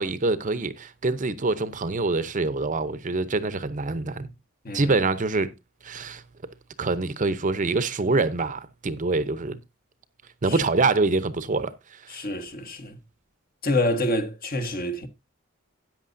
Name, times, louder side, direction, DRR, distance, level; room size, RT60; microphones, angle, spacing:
voice 1, 0.0-4.3 4.7-5.5 5.8-6.2 6.8-9.6 10.4-12.2, right 3 dB, 35° right, 0.7 m, -25 dB
voice 2, 12.1-13.0 13.6-15.1, left 1 dB, 45° left, 1.3 m, -27 dB
13.5 x 9.1 x 2.6 m
head